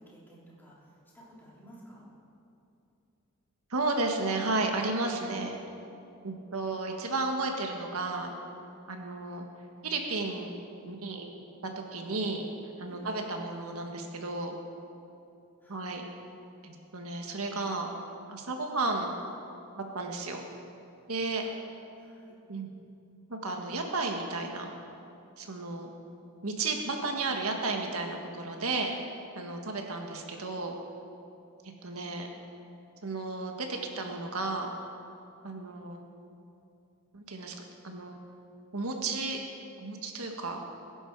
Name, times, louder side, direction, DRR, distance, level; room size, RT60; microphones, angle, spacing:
voice 1, 0.0-2.1 12.9-13.1 15.6-15.9 21.4-21.5 22.0-22.3 31.8-32.1, equal, 10° left, -6 dB, 3.4 m, -54 dB
voice 2, 3.7-5.6 6.2-8.3 8.9-9.4 9.8-10.6 10.9-11.3 11.7-12.5 12.8-14.5 15.7-16.1 16.6-17.9 18.3-19.2 19.8-20.4 21.1-21.4 22.5-22.7 23.3-24.7 25.4-25.9 26.4-28.9 29.3-30.7 31.6-32.3 33.0-34.7 35.4-36.0 37.1-37.5 37.8-38.2 38.7-39.4 39.8-40.6, right 3 dB, 80° right, 2 dB, 1.5 m, -33 dB
21.0 x 11.0 x 4.7 m, 2.7 s
head